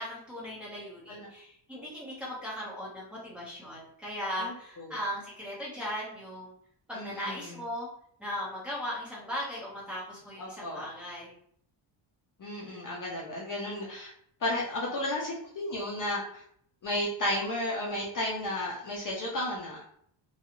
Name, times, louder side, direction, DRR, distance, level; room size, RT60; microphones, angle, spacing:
voice 1, 0.0-6.5 6.9-7.9 8.2-11.3, equal, ahead, -8 dB, 0.8 m, -38 dB
voice 2, 4.4-4.9 6.9-7.5 10.4-10.8 12.4-14.1 14.4-16.4 16.8-19.8, left 1 dB, 40° left, -3 dB, 0.5 m, -33 dB
2.6 x 2.3 x 2.9 m, 0.65 s
wide cardioid pair, 170°, 49 cm